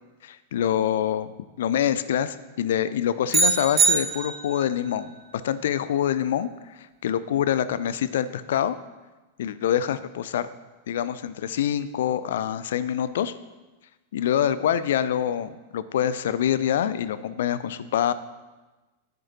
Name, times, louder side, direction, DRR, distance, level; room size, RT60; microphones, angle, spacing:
voice 1, 0.2-1.3 1.6-5.1 5.4-6.5 6.8-8.8 9.4-10.5 10.9-13.3 14.1-18.1, left 10 dB, 60° left, 15 dB, 0.4 m, -25 dB
sound 1, 3.3-4.7, right 4 dB, 25° right, 1.2 m, -22 dB
10.5 x 8.4 x 2.9 m, 1.2 s
figure-of-eight pair, 90°, 0 cm